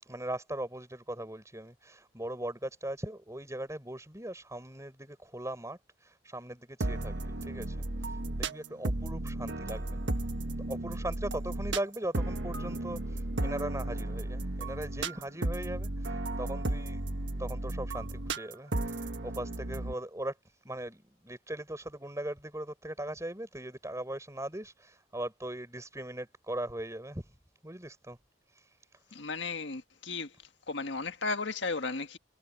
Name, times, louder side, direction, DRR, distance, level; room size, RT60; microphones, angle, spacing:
voice 1, 0.0-10.0 10.7-20.3 20.6-27.3 27.6-28.2 28.5-28.8 29.1-29.2, right 1 dB, 15° right, 5.8 m, -39 dB
sound 1, 6.8-19.9, right 2 dB, 85° right, 1.4 m, -34 dB
voice 2, 29.1-30.3 30.7-32.2, left 4 dB, 85° left, 1.6 m, -34 dB
head